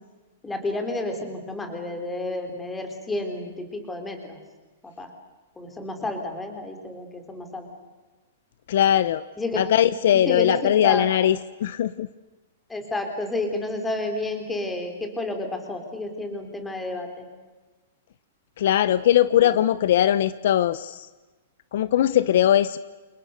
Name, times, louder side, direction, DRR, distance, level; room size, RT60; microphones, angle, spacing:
voice 1, 0.4-4.4 4.8-5.1 5.6-7.7 9.4-9.6 10.1-11.1 12.7-17.3 19.4-19.6, left 2 dB, 5° left, 5 dB, 3.7 m, -31 dB
voice 2, 8.7-9.2 9.6-12.1 18.6-21.1 21.7-22.8, left 11 dB, 50° left, 16 dB, 0.8 m, -20 dB
29.0 x 28.5 x 6.7 m, 1.2 s
hypercardioid pair, 175°, 0 cm